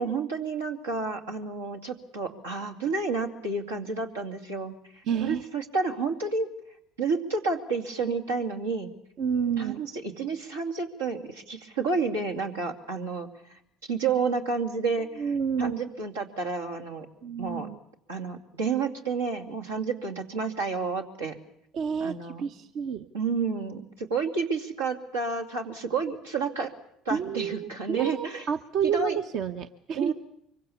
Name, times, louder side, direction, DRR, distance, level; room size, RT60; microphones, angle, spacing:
voice 1, 0.0-4.8 5.2-6.5 7.0-8.9 9.6-13.3 13.8-15.3 15.6-17.1 17.4-17.7 18.1-21.4 22.0-22.4 23.1-26.7 27.0-28.4 28.8-29.2 30.0-30.1, right 4 dB, 90° right, 1 dB, 2.5 m, -30 dB
voice 2, 5.0-5.4 9.2-9.8 15.2-15.8 17.2-17.8 21.7-23.1 27.1-30.1, right 7 dB, 60° right, 7 dB, 0.9 m, -29 dB
24.5 x 23.5 x 7.1 m, 0.73 s
hypercardioid pair, 65°, 0 cm